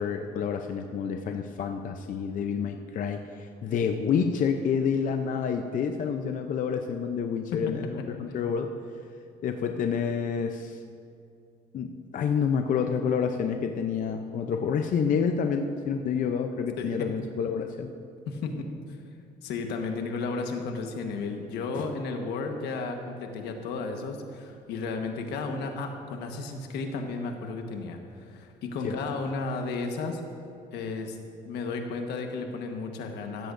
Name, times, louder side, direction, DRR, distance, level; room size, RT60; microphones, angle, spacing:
voice 1, 0.0-8.7 9.4-10.8 11.7-17.9 21.8-21.9 28.8-29.0, left 6 dB, 50° left, 5 dB, 0.6 m, -28 dB
voice 2, 7.5-8.0 16.8-17.1 18.3-18.7 19.4-30.2 30.7-31.2 31.4-33.5, left 4 dB, 80° left, 4 dB, 1.3 m, -33 dB
16.0 x 13.0 x 2.6 m, 2.5 s
cardioid pair, 110°, 17 cm